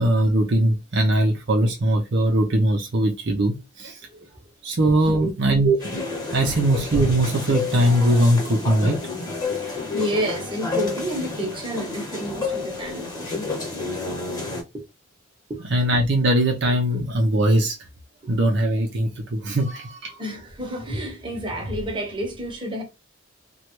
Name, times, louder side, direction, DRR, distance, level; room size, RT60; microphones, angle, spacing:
voice 1, 0.0-4.0 4.6-6.0 6.3-9.0 15.7-17.8 18.3-20.2, right 1 dB, 60° right, 0.6 m, -20 dB
sound 1, 5.8-14.6, left 3 dB, 20° left, 1.2 m, -30 dB
voice 2, 9.4-14.2 14.7-14.8 15.5-15.6 20.2-22.8, equal, 25° right, 1.0 m, -30 dB
3.1 x 2.3 x 3.0 m
head